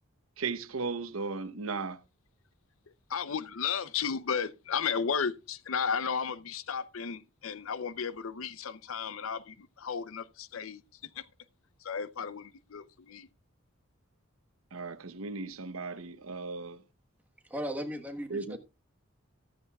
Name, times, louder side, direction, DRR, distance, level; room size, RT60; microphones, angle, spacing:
voice 1, 0.4-2.0 14.7-16.8 18.3-18.6, right 4 dB, 85° right, 0.9 m, -36 dB
voice 2, 3.1-10.8 11.2-11.3 11.8-13.3, left 6 dB, 75° left, 0.6 m, -34 dB
voice 3, 17.4-18.6, equal, 10° right, 1.3 m, -36 dB
14.0 x 13.0 x 2.3 m
head